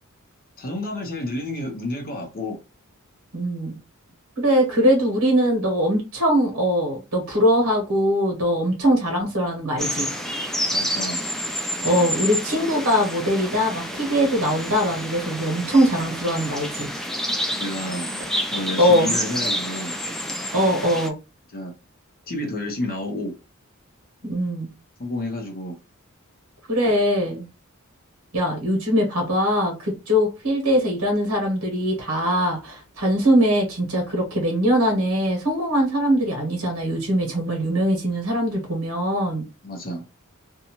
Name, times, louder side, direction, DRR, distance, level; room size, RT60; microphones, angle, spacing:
voice 1, 0.6-2.6 10.7-11.2 11.8-12.1 17.6-18.1 18.5-20.0 21.5-21.7 22.3-23.3 25.0-25.8 39.6-40.0, left 1 dB, 45° left, 0.8 m, -30 dB
voice 2, 3.3-3.8 4.4-10.1 11.8-16.9 18.8-19.3 20.5-21.1 24.2-24.7 26.7-27.4 28.3-39.4, equal, 80° right, 1.1 m, -21 dB
sound 1, 9.8-21.1, equal, ahead, 0.3 m, -29 dB
2.7 x 2.2 x 2.9 m
head